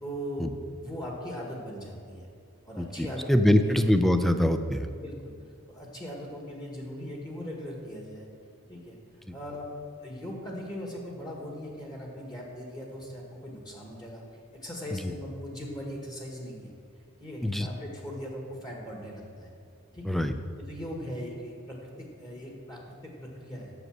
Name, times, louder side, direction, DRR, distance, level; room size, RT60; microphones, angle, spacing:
voice 1, 0.0-2.3 2.6-3.7 4.9-5.3 5.7-8.3 8.7-9.0 9.3-9.7 10.0-14.2 14.6-16.7 17.2-19.5 19.9-20.2 20.7-23.7, equal, 20° left, -1 dB, 1.5 m, -39 dB
voice 2, 2.8-4.9 14.9-15.1 17.4-17.7 20.1-20.3, left 1 dB, ahead, 8 dB, 0.4 m, -24 dB
8.1 x 6.6 x 7.4 m, 2.2 s
head